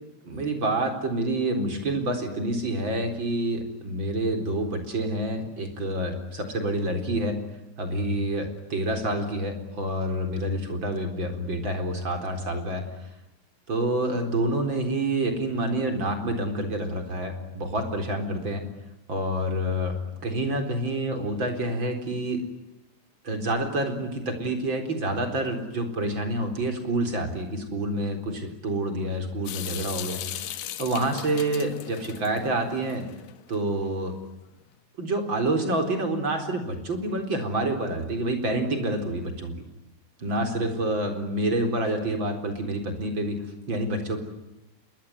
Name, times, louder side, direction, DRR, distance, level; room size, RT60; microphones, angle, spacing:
voice 1, 0.2-7.4 7.8-12.9 13.7-18.6 19.1-22.4 23.2-33.0 33.5-34.1 35.0-39.6 40.2-44.2, right 1 dB, 25° right, 5 dB, 4.1 m, -28 dB
Water tap faucet / Sink (filling or washing) / Drip, 29.5-33.6, left 12 dB, 65° left, 2.5 m, -37 dB
27.5 x 22.5 x 9.4 m, 0.92 s
omnidirectional pair, 5.8 m